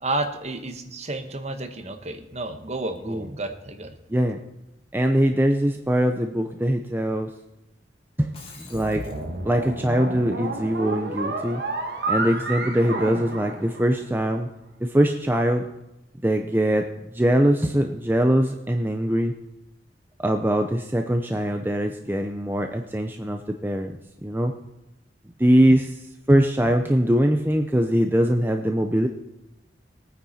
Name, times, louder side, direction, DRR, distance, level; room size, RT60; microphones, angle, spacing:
voice 1, 0.0-4.0, right 2 dB, 40° right, 7 dB, 1.2 m, -31 dB
voice 2, 4.9-7.3 8.2-8.3 8.6-9.0 9.4-11.6 12.1-14.5 14.8-15.7 16.2-16.9 17.1-19.3 20.2-24.5 25.4-29.1, equal, 10° right, 4 dB, 0.6 m, -22 dB
Shatter, 8.2-9.3, left 4 dB, 30° left, 2.1 m, -46 dB
sound 1, 8.7-14.2, right 2 dB, 65° right, 1.8 m, -31 dB
20.0 x 9.4 x 4.3 m, 0.92 s
head